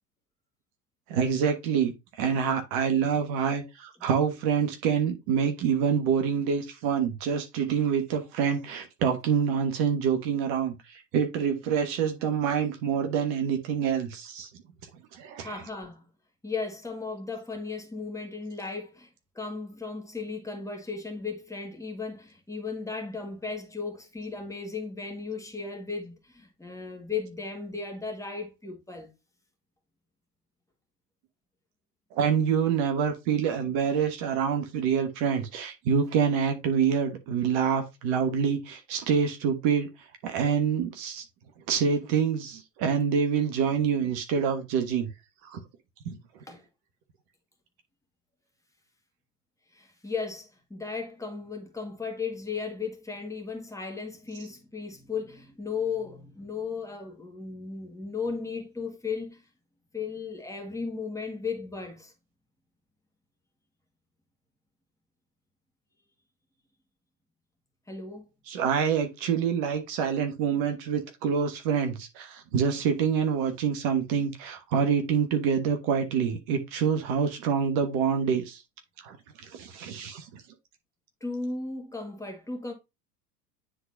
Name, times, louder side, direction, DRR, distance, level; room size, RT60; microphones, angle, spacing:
voice 1, 1.1-14.5 15.1-15.6 32.1-39.9 40.2-41.2 41.7-45.1 45.4-45.6 46.0-46.2 68.5-78.6 79.0-80.4, right 7 dB, 45° right, 1.3 m, -26 dB
voice 2, 15.4-16.0 16.4-19.1 19.4-29.1 46.5-46.6 49.7-59.4 59.9-62.1 67.9-68.2 81.2-82.7, left 4 dB, 5° left, 1.9 m, -35 dB
9.8 x 3.9 x 2.6 m
figure-of-eight pair, 80°, 48 cm